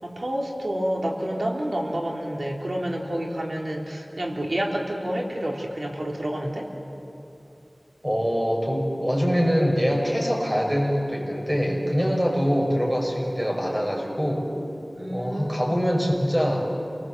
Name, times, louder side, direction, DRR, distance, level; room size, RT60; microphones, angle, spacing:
voice 1, 0.0-6.7 14.9-15.8, right 1 dB, 65° right, 0 dB, 3.4 m, -29 dB
voice 2, 8.0-14.5 15.1-16.7, equal, 15° right, 0 dB, 5.8 m, -24 dB
28.5 x 19.5 x 8.0 m, 2.9 s
wide cardioid pair, 50°, 0 cm